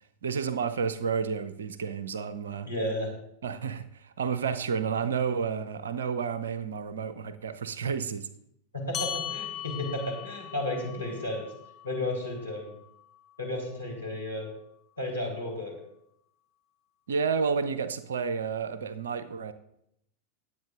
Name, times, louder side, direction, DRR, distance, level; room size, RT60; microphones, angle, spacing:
voice 1, 0.2-2.7 3.4-8.3 17.1-19.5, right 6 dB, 65° right, 13 dB, 0.6 m, -31 dB
voice 2, 2.7-3.1 8.7-11.4 11.8-12.7 13.4-14.5 15.0-15.7, left 1 dB, 85° left, -3 dB, 3.4 m, -33 dB
sound 1, 8.9-13.7, left 9 dB, 30° left, 1.7 m, -40 dB
19.0 x 8.1 x 2.5 m, 0.76 s
figure-of-eight pair, 90°, 0 cm